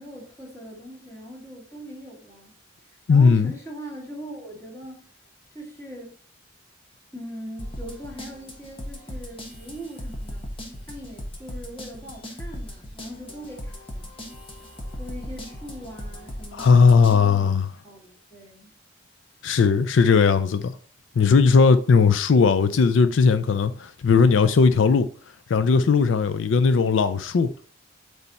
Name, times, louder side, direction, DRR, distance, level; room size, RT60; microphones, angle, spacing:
voice 1, 0.0-2.5 3.1-5.1 5.5-6.1 7.1-10.5 10.8-14.2 15.0-17.5 17.8-18.7, equal, 15° left, 2.4 m, -41 dB
voice 2, 3.1-3.5 16.6-17.7 19.4-20.7 21.2-25.1 25.5-27.5, left 5 dB, 85° left, 0.4 m, -18 dB
sound 1, 7.6-17.2, equal, 30° left, 1.2 m, -38 dB
8.3 x 3.4 x 4.1 m
head